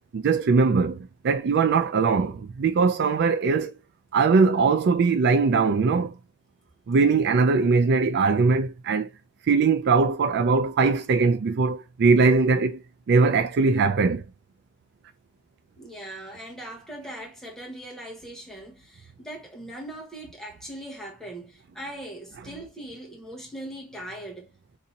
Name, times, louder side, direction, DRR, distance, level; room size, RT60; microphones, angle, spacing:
voice 1, 0.1-3.7 4.1-6.1 6.9-9.1 9.4-12.8 13.1-14.2, right 4 dB, 50° right, 0.4 m, -21 dB
voice 2, 15.8-24.5, right 1 dB, ahead, 0.9 m, -40 dB
2.8 x 2.6 x 3.9 m
head